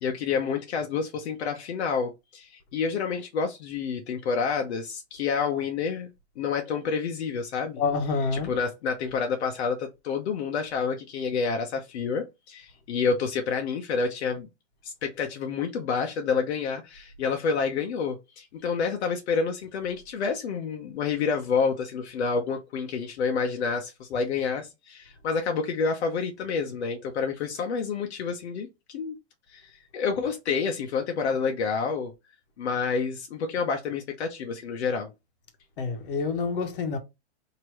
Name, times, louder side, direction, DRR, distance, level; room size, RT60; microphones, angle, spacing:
voice 1, 0.0-6.1 6.4-7.8 8.3-14.5 14.8-29.1 29.5-32.1 32.6-35.1, left 5 dB, 75° left, 0.9 m, -29 dB
voice 2, 7.8-8.5 35.8-37.0, left 4 dB, 50° left, 1.1 m, -27 dB
4.7 x 2.9 x 3.0 m
supercardioid pair, 175°, 34 cm